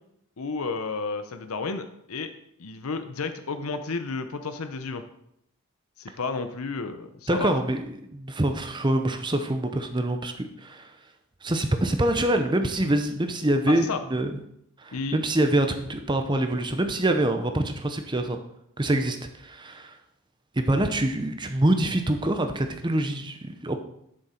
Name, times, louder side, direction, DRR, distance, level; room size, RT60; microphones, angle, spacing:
voice 1, 0.4-2.3 2.6-5.0 6.0-7.5 13.7-14.0 14.9-15.2, left 4 dB, 80° left, 9 dB, 0.7 m, -32 dB
voice 2, 7.3-10.9 11.4-14.4 14.8-18.4 18.8-20.0 20.6-23.8, right 1 dB, 20° right, 7 dB, 0.7 m, -25 dB
11.5 x 6.5 x 4.3 m, 0.77 s
head